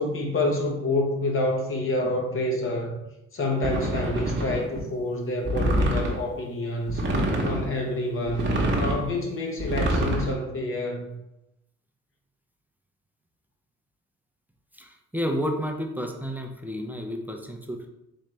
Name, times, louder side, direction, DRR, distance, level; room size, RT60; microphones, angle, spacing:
voice 1, 0.0-3.0 3.3-7.0 7.4-11.1, left 1 dB, 45° left, 1 dB, 0.9 m, -28 dB
sound 1, 3.6-4.8 5.4-6.2 6.9-7.7 8.3-9.0 9.6-10.3, right 1 dB, 40° right, 1.0 m, -25 dB
voice 2, 14.7-17.9, equal, 5° right, 2 dB, 0.5 m, -31 dB
3.9 x 3.2 x 3.2 m, 0.88 s
cardioid pair, 90°, 30 cm